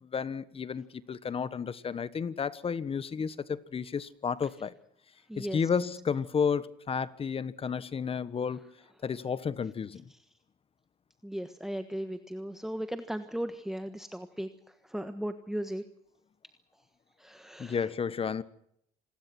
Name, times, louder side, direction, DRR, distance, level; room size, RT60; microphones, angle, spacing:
voice 1, 0.0-4.7 5.4-8.7 9.0-10.0 17.6-18.4, left 6 dB, 35° left, 1.3 m, -32 dB
voice 2, 5.3-5.8 10.1-10.2 11.2-15.8 17.2-17.9, right 1 dB, ahead, 1.4 m, -37 dB
27.5 x 20.5 x 6.1 m
cardioid pair, 110°, 17 cm